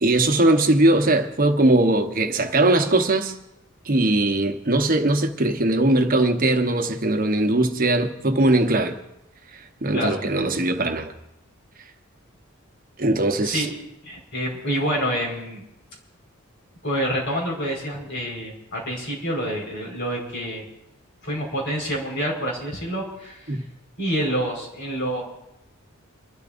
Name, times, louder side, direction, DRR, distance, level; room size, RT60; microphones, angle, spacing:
voice 1, 0.0-3.3 3.8-9.0 9.5-11.1 13.0-13.7 23.5-23.6, right 2 dB, 40° right, 1.0 m, -20 dB
voice 2, 14.0-15.6 16.8-20.6 21.2-23.5 24.0-25.2, equal, 60° left, 4.8 m, -27 dB
30.0 x 13.0 x 2.6 m
head